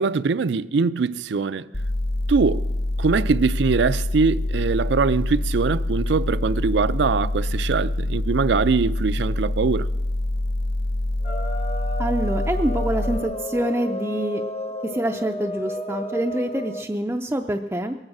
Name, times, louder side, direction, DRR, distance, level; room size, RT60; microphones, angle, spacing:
voice 1, 0.0-1.7 2.3-2.7 3.0-9.9, right 4 dB, 70° right, 0.4 m, -22 dB
sound 1, 1.7-13.2, left 1 dB, 60° left, 1.4 m, -25 dB
sound 2, 11.2-16.9, left 1 dB, 35° left, 0.9 m, -32 dB
voice 2, 12.0-14.4 14.9-18.0, right 1 dB, 10° right, 0.4 m, -26 dB
21.0 x 8.8 x 6.1 m
head